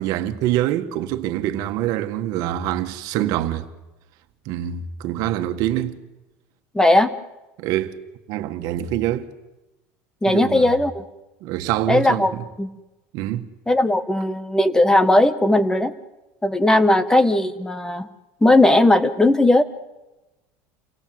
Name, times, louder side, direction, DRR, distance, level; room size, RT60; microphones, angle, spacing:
voice 1, 0.0-3.7 4.5-6.0 7.6-8.0 8.3-9.3 10.3-10.7 11.4-12.4 13.1-13.5, right 12 dB, 65° right, 1.8 m, -25 dB
voice 2, 6.7-7.1 10.2-11.0 11.9-12.3 12.6-12.7 13.7-15.9 16.4-18.1 18.4-19.6, left 1 dB, 10° left, 1.5 m, -17 dB
29.5 x 23.0 x 8.0 m
supercardioid pair, 110°, 7 cm